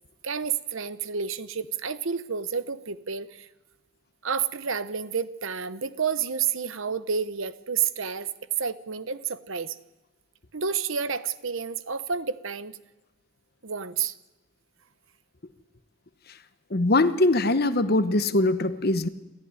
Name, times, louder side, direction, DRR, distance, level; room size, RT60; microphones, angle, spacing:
voice 1, 0.2-3.5 4.2-8.3 8.6-9.8 10.5-12.8 13.6-14.1, right 6 dB, 65° right, 13 dB, 1.0 m, -30 dB
voice 2, 16.7-19.1, left 2 dB, 45° left, 12 dB, 1.0 m, -22 dB
28.5 x 14.0 x 9.7 m, 1.1 s
head